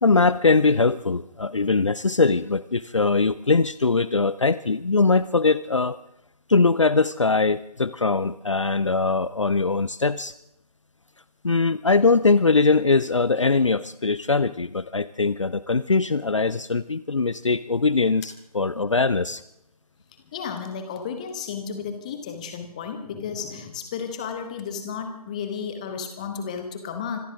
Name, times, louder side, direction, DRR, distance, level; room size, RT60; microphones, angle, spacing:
voice 1, 0.0-6.0 6.5-10.3 11.4-19.4, left 3 dB, 50° left, 17 dB, 0.6 m, -21 dB
voice 2, 20.3-27.2, left 6 dB, 10° left, 7 dB, 1.2 m, -33 dB
25.5 x 14.5 x 3.6 m, 0.81 s
figure-of-eight pair, 160°, 20 cm